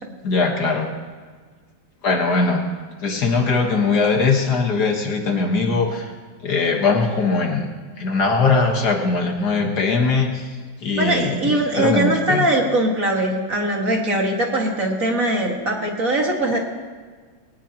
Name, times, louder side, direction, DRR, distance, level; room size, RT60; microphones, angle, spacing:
voice 1, 0.2-0.9 2.0-2.6 3.0-6.1 6.4-7.7 8.0-10.5 10.8-12.4, left 4 dB, 55° left, 2 dB, 1.8 m, -20 dB
voice 2, 11.0-16.6, right 1 dB, 45° right, 0 dB, 2.2 m, -21 dB
20.0 x 18.5 x 2.9 m, 1.5 s
omnidirectional pair, 2.1 m